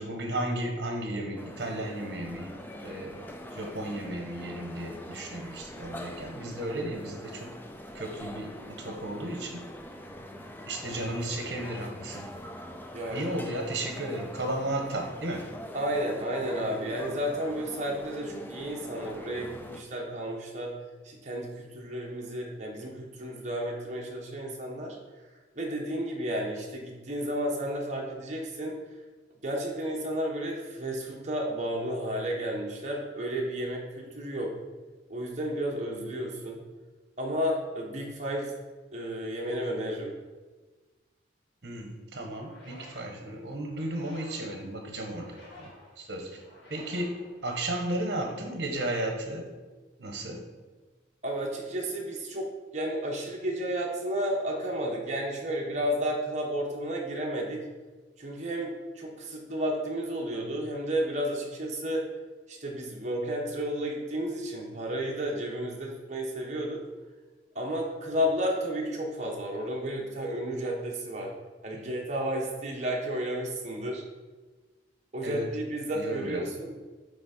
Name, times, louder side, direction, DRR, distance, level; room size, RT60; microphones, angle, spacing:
voice 1, 0.0-2.5 2.8-7.5 7.9-9.7 10.7-12.3 13.1-15.5 41.6-46.4 46.7-49.4 50.0-50.4 71.7-71.9 75.2-75.5 75.9-76.4, right 1 dB, 60° right, 2 dB, 1.2 m, -34 dB
sound 1, 1.4-19.8, left 1 dB, 10° left, 0.4 m, -44 dB
voice 2, 12.9-13.3 15.7-20.7 21.0-25.0 25.5-28.8 29.4-34.5 35.1-36.6 37.2-38.5 38.9-40.2 51.2-52.5 52.7-57.6 58.2-62.0 62.5-66.8 67.5-71.3 71.6-74.0 75.1-76.7, equal, 40° right, -1 dB, 1.1 m, -32 dB
sound 2, 42.2-48.0, left 1 dB, 60° left, 2.2 m, -53 dB
8.6 x 3.4 x 4.3 m, 1.3 s
head